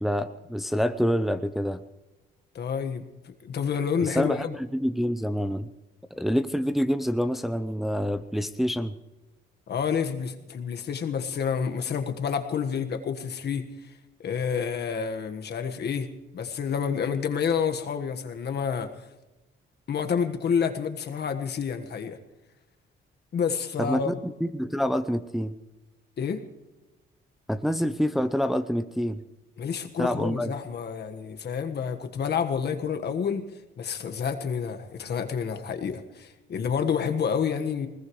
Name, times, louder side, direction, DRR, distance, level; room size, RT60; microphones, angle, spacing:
voice 1, 0.0-1.8 4.0-5.7 6.1-8.9 23.8-25.5 27.5-29.2 30.0-30.5, equal, ahead, 10 dB, 0.7 m, -27 dB
voice 2, 2.5-3.1 3.4-4.5 9.7-13.7 14.2-18.9 19.9-22.2 23.3-24.2 26.2-26.4 29.6-33.5 33.8-37.9, left 6 dB, 55° left, 6 dB, 1.5 m, -29 dB
20.5 x 20.0 x 3.2 m, 1.1 s
cardioid pair, 90°, 20 cm